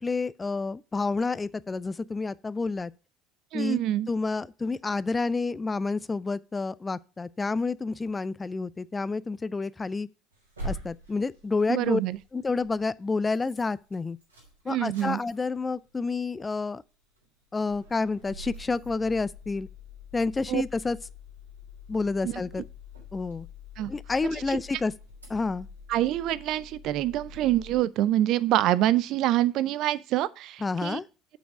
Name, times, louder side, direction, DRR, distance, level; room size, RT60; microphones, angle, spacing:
voice 1, 0.0-2.9 3.5-3.8 4.1-10.1 10.6-12.0 12.3-14.2 14.7-16.8 17.5-19.7 20.1-21.0 21.9-22.7 23.1-23.5 23.9-24.9 25.3-25.7 30.6-31.1, left 3 dB, 20° left, 0.4 m, -29 dB
voice 2, 3.5-4.1 11.7-12.2 14.7-15.2 20.5-20.6 22.2-22.4 23.8-23.9 25.9-31.0, right 13 dB, 55° right, 0.4 m, -26 dB
sound 1, 10.3-12.9 13.3-13.7 13.9-15.8 16.1-16.2 16.5-16.6 17.2-17.4 17.6-27.8, left 1 dB, 90° right, 3.2 m, -45 dB
6.9 x 6.1 x 4.7 m
figure-of-eight pair, 60°, 0 cm